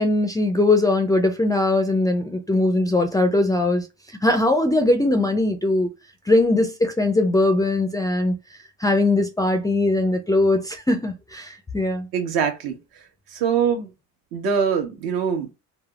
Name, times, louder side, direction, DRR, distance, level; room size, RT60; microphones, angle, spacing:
voice 1, 0.0-3.8 4.2-5.9 6.3-8.3 8.8-12.1, left 2 dB, 10° left, 0.4 m, -20 dB
voice 2, 12.1-12.8 13.3-13.9 14.3-15.5, right 7 dB, 70° right, 1.1 m, -23 dB
3.3 x 2.0 x 2.3 m
cardioid pair, 105°, 38 cm